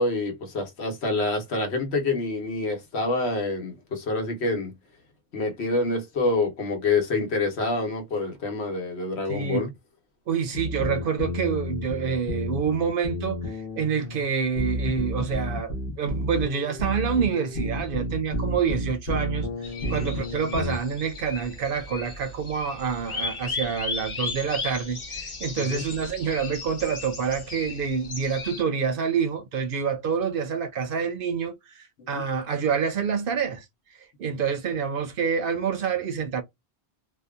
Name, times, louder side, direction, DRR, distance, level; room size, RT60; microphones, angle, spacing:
voice 1, 0.0-4.7 5.3-9.7 19.8-20.2 25.6-25.8 32.0-32.2, left 3 dB, 80° left, 1.1 m, -27 dB
voice 2, 9.3-9.7 10.3-19.5 19.9-33.6 34.2-36.4, right 6 dB, 65° right, 0.7 m, -27 dB
sound 1, 10.5-20.8, equal, 55° left, 0.9 m, -31 dB
sound 2, 19.6-28.6, left 3 dB, 35° left, 0.5 m, -36 dB
2.7 x 2.2 x 2.3 m
omnidirectional pair, 1.1 m